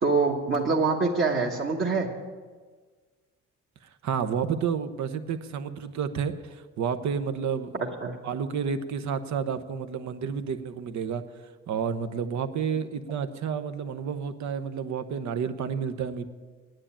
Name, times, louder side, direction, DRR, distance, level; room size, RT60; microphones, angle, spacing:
voice 1, 0.0-2.1 7.8-8.2, right 4 dB, 40° right, -3 dB, 1.4 m, -25 dB
voice 2, 3.8-7.9 8.2-16.3, right 7 dB, 70° right, 10 dB, 0.9 m, -30 dB
9.8 x 9.0 x 8.5 m, 1.5 s
cardioid pair, 90°, 30 cm